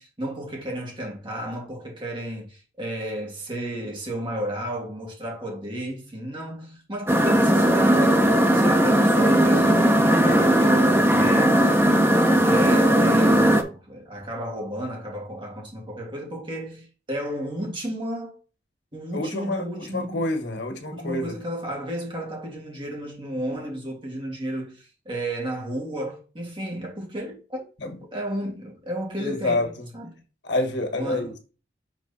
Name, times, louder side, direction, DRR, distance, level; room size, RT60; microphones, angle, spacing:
voice 1, 0.0-8.2 8.5-11.7 12.4-18.4 18.9-20.3 20.9-27.6 28.1-30.2 31.0-31.3, right 1 dB, 30° right, 2.7 m, -33 dB
sound 1, 7.1-13.6, right 1 dB, 15° right, 0.8 m, -18 dB
voice 2, 19.1-21.3 27.8-27.9 29.2-29.9 30.4-31.4, left 2 dB, 90° left, 1.5 m, -28 dB
6.2 x 4.1 x 4.3 m
head